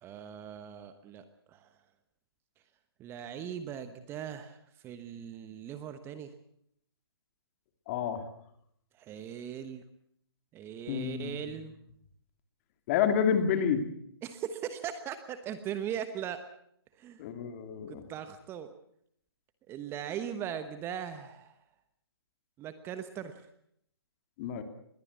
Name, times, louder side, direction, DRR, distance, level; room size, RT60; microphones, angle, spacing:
voice 1, 0.0-1.7 3.0-6.3 8.9-9.8 10.5-11.7 14.2-16.4 16.9-17.2 17.9-18.7 19.7-21.6 22.6-23.5, right 9 dB, 20° right, 10 dB, 1.1 m, -39 dB
voice 2, 7.9-8.2 10.9-11.3 12.9-13.9 17.2-18.0 24.4-24.6, left 7 dB, 35° left, 7 dB, 2.8 m, -29 dB
21.5 x 16.5 x 8.5 m, 0.71 s
hypercardioid pair, 145°, 13 cm